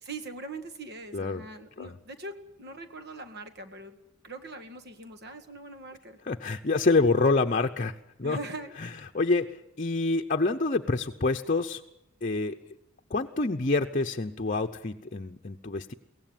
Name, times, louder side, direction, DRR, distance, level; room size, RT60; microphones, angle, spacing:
voice 1, 0.0-4.0 4.2-6.2 8.2-8.8, right 2 dB, 55° right, 8 dB, 2.1 m, -42 dB
voice 2, 1.1-1.4 1.8-2.0 6.3-8.4 8.8-8.9 9.1-11.8 12.2-12.6 13.1-15.9, left 3 dB, 40° left, 5 dB, 0.8 m, -27 dB
23.0 x 17.5 x 9.1 m, 0.86 s
head